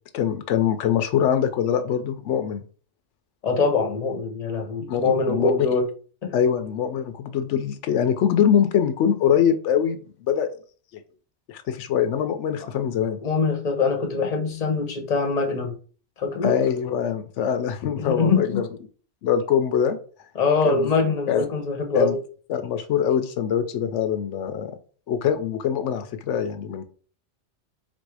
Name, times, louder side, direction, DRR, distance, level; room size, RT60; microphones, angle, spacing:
voice 1, 0.1-2.6 4.9-5.5 6.3-10.5 10.9-11.0 11.5-13.2 16.4-18.6 19.2-20.0 20.6-20.9 21.3-21.5 21.9-22.2 22.5-24.7 25.1-26.8, left 8 dB, 90° left, 9 dB, 0.9 m, -23 dB
voice 2, 3.4-5.9 6.2-6.3 13.2-15.7 16.2-16.5 18.0-18.6 20.3-22.2, left 4 dB, 40° left, 4 dB, 0.9 m, -23 dB
3.8 x 2.6 x 4.7 m, 0.41 s
omnidirectional pair, 1.2 m